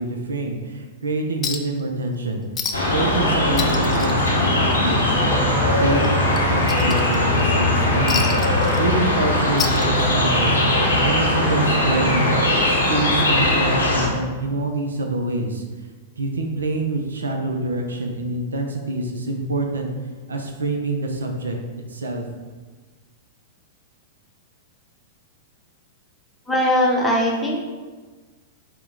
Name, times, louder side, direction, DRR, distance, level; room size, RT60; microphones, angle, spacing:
voice 1, 0.0-2.4 2.9-5.2 5.6-8.3 8.8-10.6 11.0-12.3 12.6-15.6 16.2-19.9 20.3-21.6 21.9-22.3, right 2 dB, 75° right, 3 dB, 0.4 m, -26 dB
Chink clink, 1.4-1.8 2.1-2.2 2.6-3.0 3.3-5.0 5.4-5.5 6.0-7.4 8.1-9.2 9.5-10.4 11.5-11.6, left 6 dB, 25° left, 0.3 m, -30 dB
sound 1, 2.7-14.1, left 1 dB, 85° left, 0.8 m, -19 dB
voice 2, 26.5-27.6, equal, 5° left, -3 dB, 0.8 m, -19 dB
4.4 x 2.1 x 3.7 m, 1.4 s
figure-of-eight pair, 100°, 0 cm